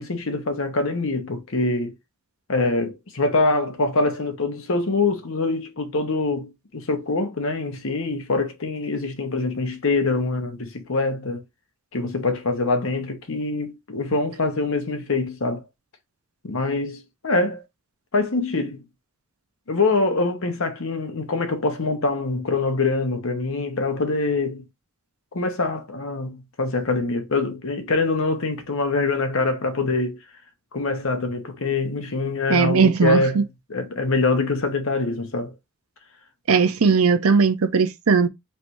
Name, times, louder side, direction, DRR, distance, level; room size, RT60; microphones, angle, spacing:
voice 1, 0.0-2.0 2.5-11.4 11.9-15.6 16.4-17.6 18.1-18.8 19.7-24.6 25.3-30.2 30.7-33.4 33.7-35.5, left 3 dB, 65° left, 1.0 m, -24 dB
voice 2, 32.5-33.4 36.5-38.3, right 5 dB, 85° right, 0.6 m, -18 dB
3.3 x 2.6 x 4.3 m
head